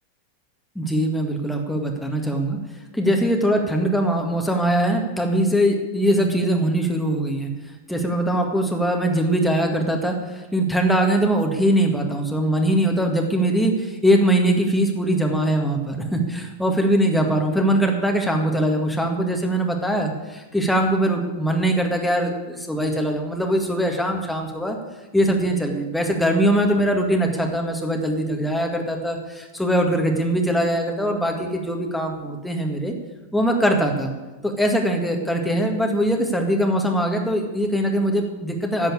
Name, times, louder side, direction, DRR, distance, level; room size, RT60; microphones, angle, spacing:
voice 1, 0.8-2.6 2.9-7.5 7.9-24.8 25.1-32.9 33.3-34.1 34.4-38.9, right 1 dB, 5° left, 2 dB, 1.8 m, -22 dB
10.5 x 7.7 x 9.7 m, 1.2 s
figure-of-eight pair, 90°, 0 cm